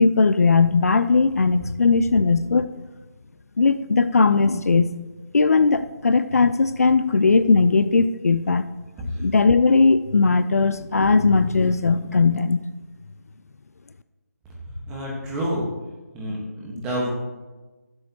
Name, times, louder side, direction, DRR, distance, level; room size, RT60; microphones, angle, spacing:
voice 1, 0.0-2.8 3.6-4.9 5.3-8.7 9.2-12.6, left 4 dB, 60° left, 13 dB, 0.4 m, -18 dB
voice 2, 14.9-15.6 16.1-17.1, equal, 10° right, -3 dB, 1.3 m, -28 dB
14.5 x 7.7 x 2.9 m, 1.2 s
figure-of-eight pair, 170°, 9 cm